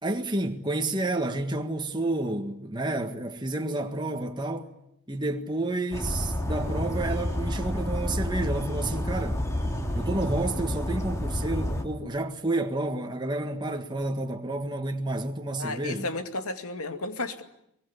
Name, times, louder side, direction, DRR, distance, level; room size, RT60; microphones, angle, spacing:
voice 1, 0.0-4.7 5.1-9.4 9.9-16.0, right 2 dB, 20° right, 1.7 m, -30 dB
sound 1, 5.9-11.8, left 1 dB, 15° left, 2.7 m, -29 dB
voice 2, 15.6-17.4, left 2 dB, 80° left, 2.4 m, -33 dB
24.0 x 21.5 x 9.8 m
head